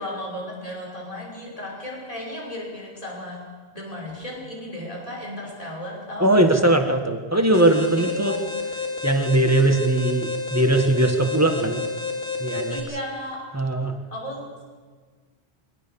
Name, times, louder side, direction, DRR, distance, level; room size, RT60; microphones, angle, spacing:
voice 1, 0.0-3.4 3.7-6.4 8.0-8.4 12.7-13.5 14.1-14.6, left 1 dB, 35° left, -3 dB, 5.8 m, -34 dB
voice 2, 6.2-8.3 9.0-11.8 12.4-12.8 13.5-14.0, right 1 dB, 15° right, 5 dB, 1.6 m, -20 dB
Alarm, 7.5-12.8, left 4 dB, 70° left, 3.3 m, -30 dB
22.5 x 18.0 x 7.0 m, 1.5 s
omnidirectional pair, 1.0 m